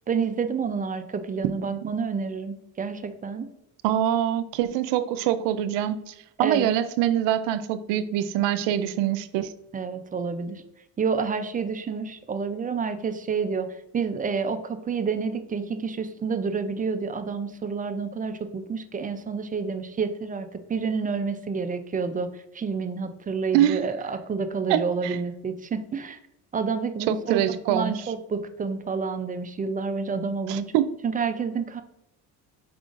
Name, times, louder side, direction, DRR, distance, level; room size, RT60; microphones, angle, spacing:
voice 1, 0.1-3.5 6.4-6.7 9.7-10.6 11.0-13.7 13.9-22.3 22.5-26.2 26.5-30.6 31.0-31.8, right 5 dB, 20° right, 9 dB, 0.4 m, -29 dB
voice 2, 3.8-9.5 23.5-23.9 24.7-25.2 27.1-28.1 30.5-30.9, right 11 dB, 80° right, 12 dB, 0.5 m, -24 dB
4.9 x 3.7 x 2.4 m, 0.85 s
supercardioid pair, 85°, 43 cm